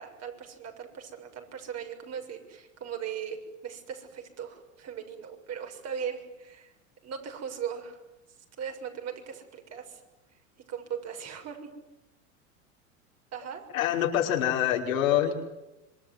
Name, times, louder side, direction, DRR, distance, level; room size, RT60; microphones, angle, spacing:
voice 1, 0.0-3.4 3.6-6.7 7.0-8.0 8.6-10.0 10.7-11.7 13.3-13.6, right 8 dB, 40° right, 4 dB, 6.9 m, -38 dB
voice 2, 13.7-15.3, left 11 dB, 75° left, 1 dB, 5.6 m, -25 dB
26.5 x 22.5 x 9.6 m, 0.97 s
hypercardioid pair, 100°, 40 cm